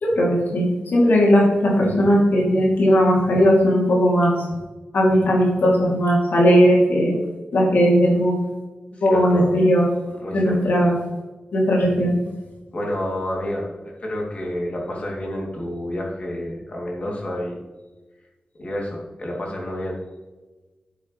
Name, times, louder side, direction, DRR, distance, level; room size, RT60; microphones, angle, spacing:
voice 1, 0.0-4.3 4.9-7.1 7.5-8.4 9.0-9.9 10.3-11.0 11.5-12.1, equal, 90° left, -3 dB, 2.9 m, -17 dB
voice 2, 8.9-9.5 10.2-10.6 12.7-13.7 14.0-17.6 18.6-20.0, left 1 dB, 45° left, -2 dB, 2.8 m, -29 dB
11.0 x 8.3 x 3.2 m, 1.2 s
wide cardioid pair, 140°, 3 cm